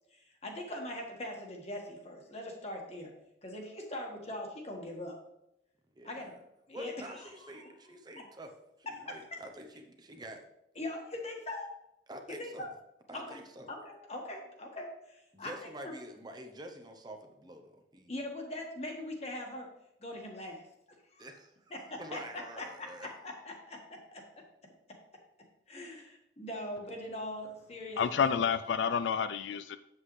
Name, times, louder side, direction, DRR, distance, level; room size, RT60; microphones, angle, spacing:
voice 1, 0.1-3.1 3.4-5.2 6.0-6.3 6.7-7.3 7.6-7.7 9.1-9.4 10.8-11.7 12.3-12.7 13.1-13.4 13.7-16.0 18.1-19.7 20.0-20.6 21.1-21.3 21.7-23.1 23.4-24.2 25.7-28.2, left 1 dB, 35° left, 1 dB, 1.5 m, -41 dB
voice 2, 5.9-6.4 6.7-8.6 8.9-10.4 12.1-12.7 13.1-13.7 15.3-18.1 21.2-23.1, right 1 dB, 20° right, 4 dB, 0.7 m, -47 dB
voice 3, 28.0-29.8, left 7 dB, 80° left, 13 dB, 0.4 m, -29 dB
8.3 x 7.6 x 3.2 m, 0.82 s
head